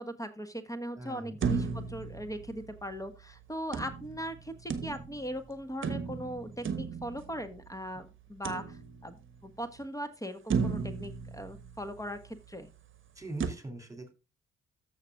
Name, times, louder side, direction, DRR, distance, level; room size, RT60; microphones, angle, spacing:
voice 1, 0.0-12.7, equal, 10° left, 9 dB, 1.5 m, -39 dB
voice 2, 1.0-1.5 13.2-14.1, right 2 dB, 10° right, 6 dB, 3.1 m, -42 dB
sound 1, 1.4-3.0 3.7-5.3 5.8-7.7 8.4-9.3 9.8-9.9 10.5-12.2 13.4-13.5, right 5 dB, 40° right, 1.3 m, -35 dB
14.0 x 6.0 x 2.4 m, 0.29 s
figure-of-eight pair, 45°, 30 cm